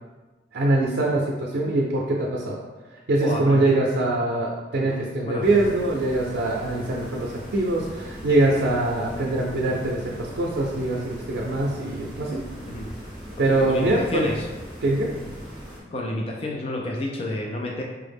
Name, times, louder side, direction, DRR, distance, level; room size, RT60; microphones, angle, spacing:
voice 1, 0.5-2.6 3.1-12.4 13.4-14.3 14.8-15.1, right 2 dB, 85° right, -3 dB, 0.5 m, -23 dB
voice 2, 3.2-3.7 4.9-5.0 5.2-5.7 12.7-12.9 13.5-14.3 15.9-17.8, left 1 dB, 35° left, -1 dB, 0.3 m, -30 dB
sound 1, 5.4-15.8, equal, 5° right, 0.8 m, -39 dB
4.6 x 2.0 x 3.4 m, 1.2 s
head